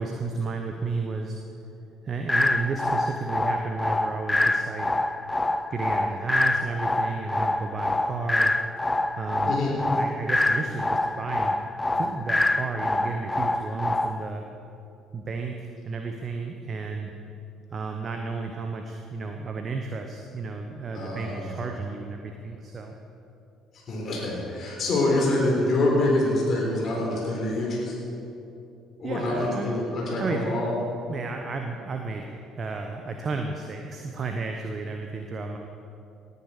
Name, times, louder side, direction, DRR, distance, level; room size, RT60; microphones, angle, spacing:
voice 1, 0.0-1.4 2.0-4.9 5.7-8.5 9.2-9.5 9.9-11.5 11.9-14.4 15.1-17.1 17.7-22.9 29.0-29.7 30.2-30.7 31.1-35.6, right 4 dB, 40° right, 4 dB, 1.1 m, -32 dB
sound 1, 2.3-14.3, left 2 dB, 15° left, 0.5 m, -26 dB
voice 2, 20.9-21.6 23.9-27.9 29.0-30.8, left 2 dB, 50° left, -3 dB, 3.8 m, -25 dB
18.5 x 9.8 x 5.0 m, 2.7 s
hypercardioid pair, 55°, 0 cm